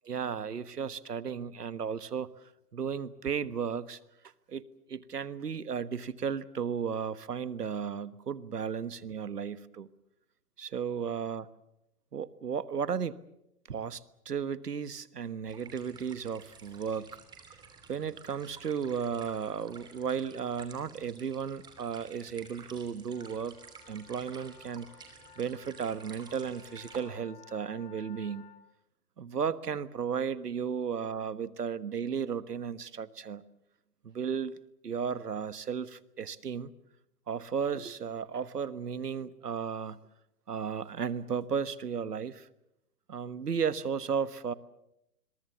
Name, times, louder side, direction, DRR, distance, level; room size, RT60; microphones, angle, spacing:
voice 1, 0.0-2.3 2.7-4.0 4.5-4.6 4.9-9.9 10.6-11.5 12.1-13.2 13.7-17.1 17.9-23.6 23.9-24.9 25.4-28.4 29.2-33.4 34.0-34.6 34.8-36.7 37.3-40.0 40.5-42.5 43.1-44.5, right 7 dB, 80° right, 15 dB, 1.5 m, -34 dB
sound 1, 15.5-27.0, right 5 dB, 10° right, 3.0 m, -53 dB
sound 2, 23.0-28.6, left 8 dB, 35° left, 3.0 m, -56 dB
27.0 x 22.5 x 7.2 m, 0.82 s
hypercardioid pair, 145°, 47 cm